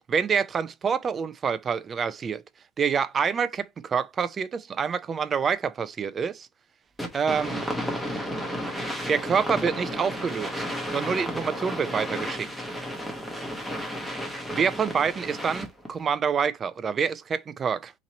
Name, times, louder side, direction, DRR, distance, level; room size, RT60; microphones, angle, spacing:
voice 1, 0.1-2.4 2.8-6.5 7.1-7.6 9.1-10.6 10.9-12.7 14.5-17.9, right 6 dB, 25° right, 0.3 m, -27 dB
sound 1, 7.0-15.9, equal, ahead, 0.8 m, -33 dB
2.9 x 2.6 x 4.0 m
cardioid pair, 150°, 0 cm